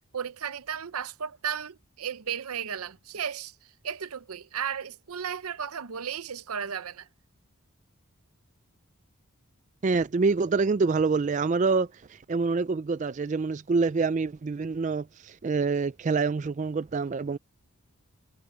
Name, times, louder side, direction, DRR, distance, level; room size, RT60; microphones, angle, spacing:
voice 1, 0.1-3.5 3.8-7.1, right 8 dB, 85° right, 0.7 m, -34 dB
voice 2, 9.8-11.9 12.3-17.4, right 4 dB, 35° right, 0.3 m, -26 dB
head